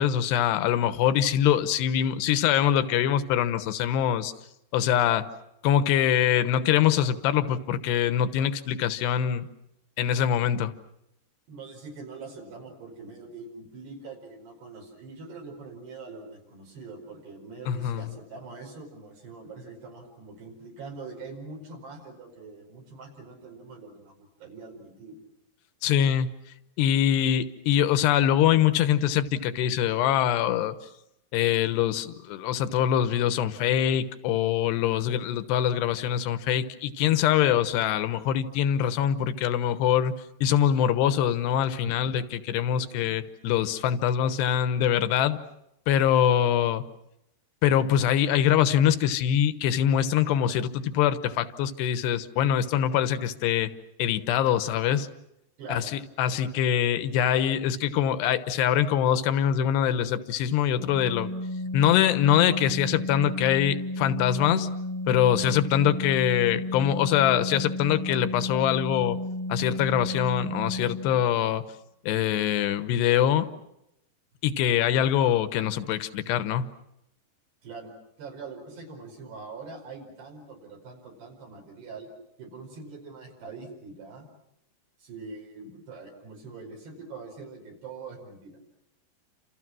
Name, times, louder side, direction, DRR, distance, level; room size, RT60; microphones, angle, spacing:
voice 1, 0.0-4.3 4.7-5.3 5.6-9.5 10.0-10.7 17.7-18.1 25.8-26.3 26.8-30.7 31.3-40.1 40.4-45.4 45.9-46.8 47.6-53.7 54.0-55.1 55.7-61.3 61.7-64.7 65.1-69.2 69.5-71.6 72.0-73.5 74.4-76.7, left 10 dB, 75° left, 12 dB, 3.1 m, -24 dB
voice 2, 11.5-25.2 42.8-43.2 55.6-55.9 56.5-56.7 77.6-82.1 82.4-84.3 85.0-88.6, right 4 dB, 65° right, 0 dB, 7.0 m, -43 dB
Organ, 60.8-71.3, left 1 dB, 50° right, 4.6 m, -33 dB
30.0 x 27.5 x 6.2 m, 0.85 s
omnidirectional pair, 5.1 m